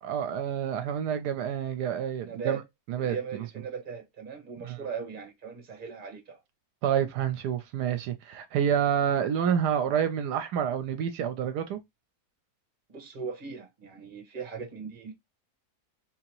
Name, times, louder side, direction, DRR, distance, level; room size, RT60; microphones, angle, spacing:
voice 1, 0.0-2.6 2.9-3.4 4.6-4.8 6.8-11.8, right 8 dB, 80° right, 1.1 m, -28 dB
voice 2, 2.2-2.6 3.0-6.4 12.9-15.1, right 6 dB, 35° right, 1.2 m, -39 dB
3.9 x 2.8 x 2.9 m
omnidirectional pair, 1.7 m